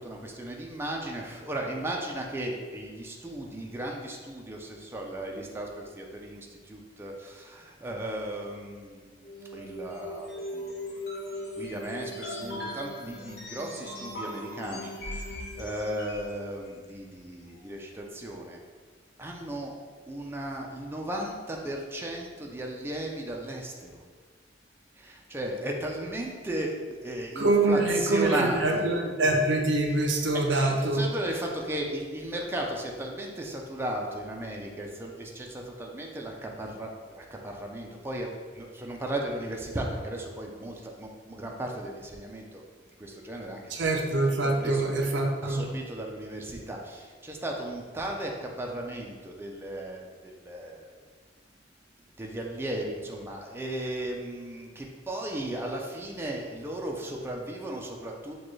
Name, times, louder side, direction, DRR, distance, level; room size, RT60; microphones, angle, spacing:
voice 1, 0.0-9.2 9.5-11.0 11.6-18.6 19.2-19.7 20.1-23.9 25.0-28.9 29.9-42.6 43.0-51.0 52.2-58.3, right 1 dB, 15° right, 0 dB, 0.4 m, -36 dB
sound 1, 9.2-16.4, left 1 dB, 65° left, 0.8 m, -39 dB
voice 2, 27.4-31.0 43.7-45.7, right 2 dB, 90° right, 2 dB, 0.6 m, -25 dB
6.4 x 2.3 x 3.1 m, 1.5 s
head